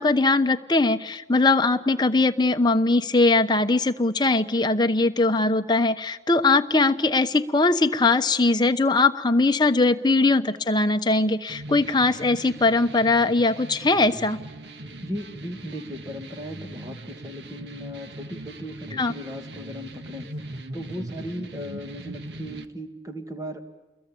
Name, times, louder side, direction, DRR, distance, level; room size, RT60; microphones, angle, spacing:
voice 1, 0.0-14.4 18.9-19.1, left 3 dB, 25° left, 7 dB, 1.0 m, -21 dB
sound 1, 11.5-22.6, right 1 dB, 75° right, 1.6 m, -40 dB
voice 2, 15.0-23.7, equal, 20° right, 5 dB, 2.1 m, -37 dB
29.5 x 22.0 x 8.7 m, 1.1 s
head